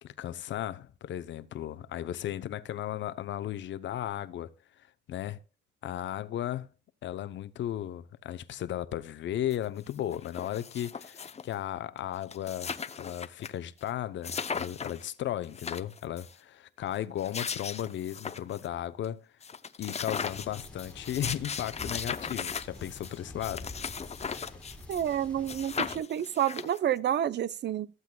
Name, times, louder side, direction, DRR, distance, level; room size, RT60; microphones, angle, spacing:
voice 1, 0.0-4.5 5.1-5.4 5.8-6.7 7.0-12.7 13.0-19.3 19.8-23.7, left 11 dB, 70° left, 0.8 m, -35 dB
sound 1, 9.5-9.6 9.9-11.5 12.0-12.1 12.2-13.5 13.8-13.9 14.2-15.0 15.4-16.3 17.0-18.7 19.0-19.1 19.4-25.2 25.5-27.0, left 6 dB, 35° left, 0.8 m, -37 dB
sound 2, 20.1-26.0, left 2 dB, 5° left, 2.2 m, -47 dB
voice 2, 24.9-27.9, right 10 dB, 60° right, 0.7 m, -29 dB
15.0 x 7.9 x 2.3 m
cardioid pair, 90°, 20 cm